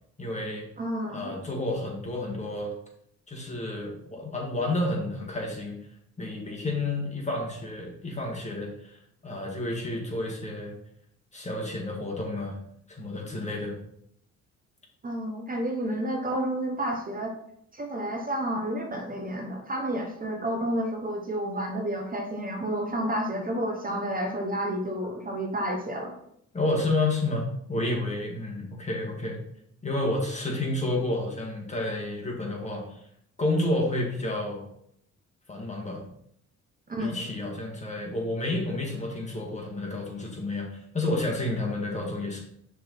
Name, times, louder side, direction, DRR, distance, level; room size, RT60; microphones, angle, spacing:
voice 1, 0.2-0.6 1.1-2.7 3.3-5.8 6.2-10.7 11.3-12.6 12.9-13.7 26.5-29.4 29.8-33.0 33.4-34.6 35.5-36.0 37.0-42.4, left 2 dB, 25° left, -2 dB, 1.9 m, -30 dB
voice 2, 0.8-1.3 15.0-17.3 17.7-26.1 36.9-37.2, right 1 dB, 30° right, 2 dB, 1.0 m, -30 dB
6.4 x 4.0 x 4.2 m, 0.72 s
cardioid pair, 90°, 30 cm